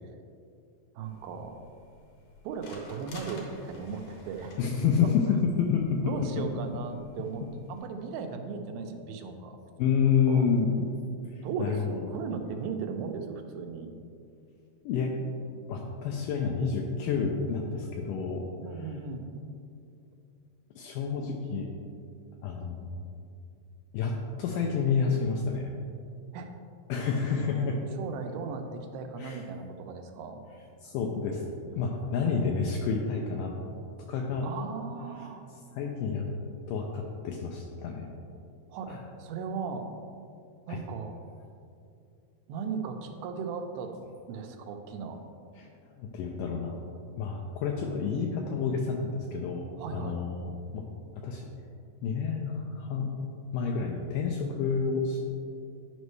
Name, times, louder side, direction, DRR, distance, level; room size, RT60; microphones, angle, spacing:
sound 1, 1.0-7.8, left 2 dB, 65° left, 2.0 m, -52 dB
voice 1, 1.0-1.6 2.4-4.6 5.0-5.4 6.0-9.6 10.3-10.5 11.4-13.9 18.6-19.3 26.3-26.5 27.4-30.4 34.4-35.4 38.7-39.9 40.7-41.2 42.5-44.0 44.3-45.2 49.8-50.2, right 5 dB, 85° right, 5 dB, 2.5 m, -37 dB
voice 2, 4.6-6.1 9.8-10.9 11.2-11.9 14.8-15.1 15.7-18.5 20.8-21.7 22.4-22.9 23.9-25.7 26.9-27.8 29.2-29.4 30.8-31.4 31.8-33.5 34.1-34.5 35.7-36.3 36.7-38.1 38.9-39.0 45.6-45.7 46.0-46.8 47.2-49.6 49.9-50.8 51.2-51.5 52.0-53.1 53.5-55.2, left 6 dB, 85° left, 1 dB, 1.9 m, -29 dB
10.0 x 5.4 x 3.2 m, 2.4 s
omnidirectional pair, 4.3 m